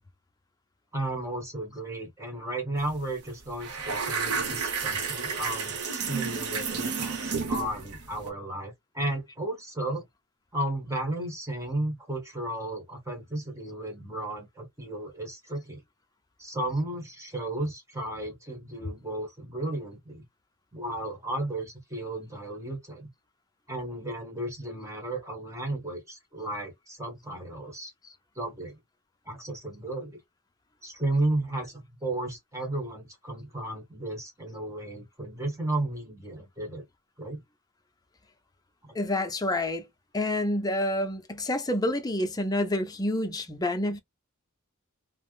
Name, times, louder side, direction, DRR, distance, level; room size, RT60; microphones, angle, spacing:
voice 1, 0.9-10.1 10.5-15.8 16.4-20.2 20.7-23.1 23.7-27.9 28.3-28.8 29.2-30.2 30.8-36.8 37.2-37.4 38.8-38.9, right 1 dB, 15° right, 1.3 m, -34 dB
sound 1, 2.8-3.0 3.2-8.3, right 5 dB, 90° right, 0.8 m, -31 dB
voice 2, 38.9-39.9 40.1-44.0, left 1 dB, 15° left, 0.5 m, -28 dB
3.3 x 2.0 x 2.3 m
head